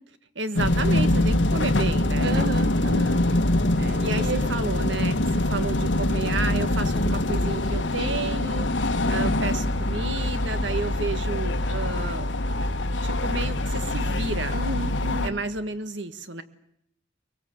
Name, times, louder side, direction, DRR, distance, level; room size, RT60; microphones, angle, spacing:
voice 1, 0.3-2.5 4.0-12.3 13.0-14.6 15.2-16.4, right 3 dB, 85° right, 11 dB, 1.6 m, -32 dB
sound 1, 0.6-15.3, left 1 dB, 90° left, 1.4 m, -24 dB
voice 2, 2.2-3.2 3.7-4.5 14.5-15.4, right 2 dB, 60° right, 11 dB, 1.0 m, -33 dB
23.5 x 23.0 x 8.1 m, 0.72 s
head